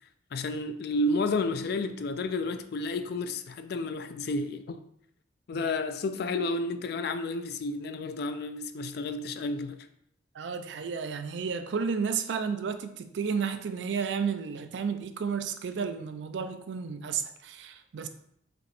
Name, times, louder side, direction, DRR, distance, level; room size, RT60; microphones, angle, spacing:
voice 1, 0.3-4.8 5.5-9.9, left 2 dB, 55° left, 0.3 m, -31 dB
voice 2, 10.3-18.1, right 6 dB, 70° right, 0.4 m, -32 dB
5.0 x 2.9 x 3.1 m
head